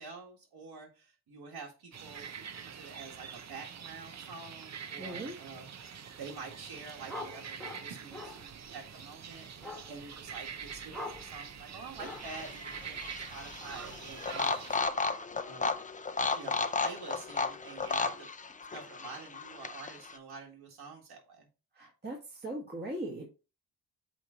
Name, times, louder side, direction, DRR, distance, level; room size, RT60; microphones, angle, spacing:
voice 1, 0.0-15.0 15.4-15.8 16.4-18.3 18.7-21.5, right 4 dB, 75° right, -1 dB, 1.8 m, -47 dB
sound 1, 1.9-14.8, right 7 dB, 45° right, 0.7 m, -45 dB
voice 2, 5.0-5.4 21.7-23.3, right 1 dB, 25° right, -2 dB, 1.7 m, -39 dB
sound 2, 6.0-6.4 6.6-14.4, left 2 dB, ahead, 1.4 m, -47 dB
sound 3, 12.0-20.2, left 4 dB, 20° left, 0.4 m, -34 dB
8.2 x 3.1 x 3.9 m, 0.32 s
wide cardioid pair, 105°, 38 cm